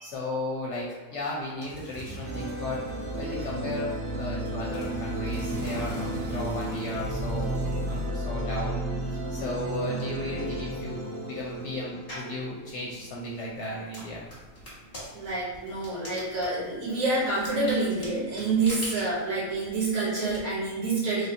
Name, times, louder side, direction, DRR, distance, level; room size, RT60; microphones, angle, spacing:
voice 1, 0.0-2.8 3.2-7.6 7.8-8.8 9.3-14.3, left 1 dB, 70° left, -4 dB, 0.8 m, -35 dB
sound 1, 1.4-12.2 12.5-16.6, equal, 15° right, 0.4 m, -43 dB
sound 2, 2.2-13.7, right 1 dB, 65° right, 0.8 m, -33 dB
sound 3, 12.1-12.4 13.0-20.4, equal, 30° left, 0.9 m, -43 dB
voice 2, 15.1-21.3, right 3 dB, 85° right, -7 dB, 1.5 m, -27 dB
3.2 x 2.4 x 2.7 m, 1.4 s
omnidirectional pair, 1.4 m